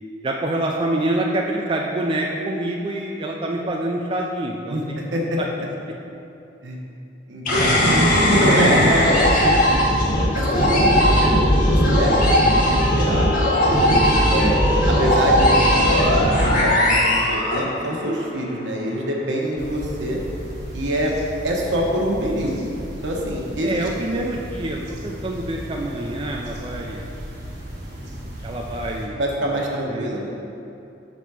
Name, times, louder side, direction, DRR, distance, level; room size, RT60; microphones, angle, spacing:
voice 1, 0.2-4.8 5.4-5.5 23.6-27.1 28.4-30.1, right 1 dB, 25° right, -1 dB, 0.4 m, -26 dB
voice 2, 4.7-5.4 6.6-6.8 7.3-8.0 8.4-9.5 10.3-13.8 14.3-14.6 14.9-15.7 16.1-20.2 20.7-21.1 21.4-22.7 23.0-23.8 29.2-30.4, right 1 dB, 75° right, -1 dB, 1.0 m, -25 dB
sound 1, 7.5-18.1, equal, 45° left, 1.4 m, -17 dB
sound 2, 19.6-29.1, equal, 55° right, 1.3 m, -35 dB
5.5 x 4.1 x 6.1 m, 2.8 s
head